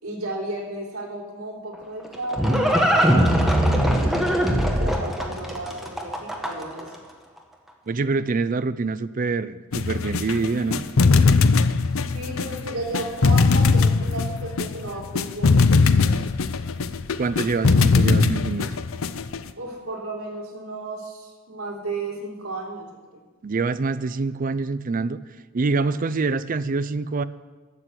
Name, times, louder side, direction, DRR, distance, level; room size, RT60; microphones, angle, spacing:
voice 1, 0.0-6.9 12.1-16.2 19.5-22.9 23.1-23.2, right 2 dB, 85° right, -2 dB, 3.4 m, -34 dB
Livestock farm animals working animals, 1.7-6.8, equal, ahead, 1.3 m, -21 dB
voice 2, 7.9-10.8 17.2-18.8 23.4-25.2 25.5-27.2, right 4 dB, 40° right, 14 dB, 0.4 m, -25 dB
sound 1, 9.7-19.5, left 4 dB, 70° left, 0.6 m, -20 dB
12.0 x 7.6 x 8.3 m, 1.4 s
head